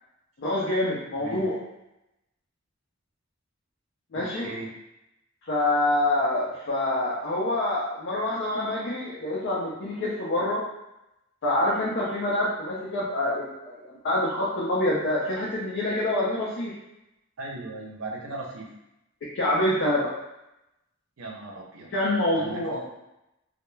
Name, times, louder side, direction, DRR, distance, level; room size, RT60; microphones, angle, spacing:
voice 1, 0.4-1.5 4.1-4.5 5.5-10.6 11.4-16.7 19.2-20.1 21.9-22.8, left 1 dB, 60° left, -6 dB, 0.5 m, -26 dB
voice 2, 1.2-1.5 4.1-4.7 17.4-18.7 21.2-21.9 22.4-22.9, right 2 dB, 85° right, -1 dB, 0.5 m, -37 dB
2.2 x 2.0 x 3.1 m, 0.89 s
head